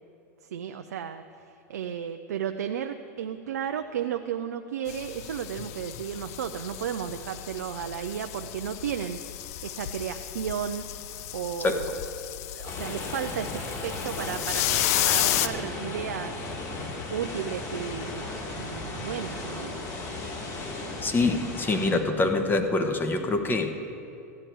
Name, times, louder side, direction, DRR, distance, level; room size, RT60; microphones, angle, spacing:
voice 1, 0.4-9.2 9.6-11.9 12.5-16.4 17.1-19.7, right 9 dB, 85° right, 7 dB, 0.5 m, -34 dB
sound 1, 4.9-15.5, left 13 dB, 65° left, 0.6 m, -32 dB
sound 2, 12.6-21.9, left 2 dB, 40° left, 3.2 m, -36 dB
voice 2, 21.0-23.7, left 3 dB, 25° left, 6 dB, 1.1 m, -25 dB
14.5 x 9.9 x 4.6 m, 2.6 s
hypercardioid pair, 100°, 9 cm